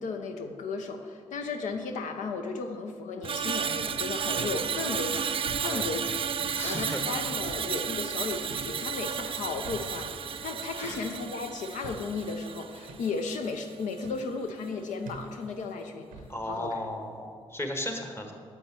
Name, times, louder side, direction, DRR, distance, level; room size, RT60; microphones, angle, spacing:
voice 1, 0.0-6.1 6.6-16.7, left 4 dB, 70° left, 5 dB, 0.5 m, -35 dB
Screech, 3.2-13.6 13.9-14.2, right 7 dB, 45° right, 0.4 m, -33 dB
sound 1, 4.4-4.7 5.4-5.7 6.4-6.6 7.4-7.7 8.5-8.8 9.6-10.0 10.8-11.1 11.8-12.1 12.9-13.1 14.0-14.2 15.1-15.3 16.1-16.4, right 4 dB, 90° right, 0.7 m, -43 dB
voice 2, 6.5-7.0 10.7-11.1 16.3-18.3, left 1 dB, 20° left, 3 dB, 1.2 m, -35 dB
7.0 x 5.3 x 4.5 m, 2.1 s
hypercardioid pair, 45°, 13 cm